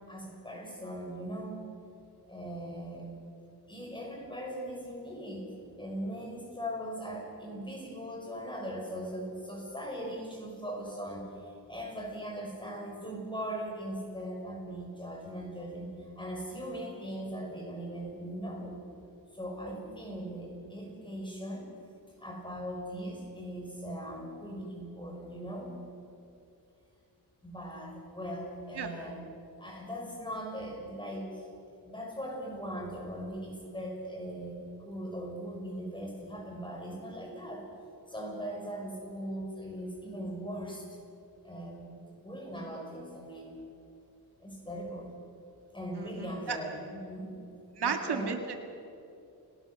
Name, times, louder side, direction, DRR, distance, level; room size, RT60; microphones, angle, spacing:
voice 1, 0.1-1.6 2.3-3.1 3.7-5.5 5.8-18.8 19.3-21.7 22.2-25.9 27.4-29.2 29.6-31.5 31.8-37.7 38.1-40.9 41.4-43.6 44.4-45.1 45.7-47.4 47.8-48.4, equal, 10° left, -1 dB, 6.3 m, -39 dB
voice 2, 46.0-46.6 47.8-48.5, right 6 dB, 80° right, 5 dB, 2.1 m, -33 dB
29.5 x 18.5 x 6.4 m, 2.7 s
wide cardioid pair, 125°, 39 cm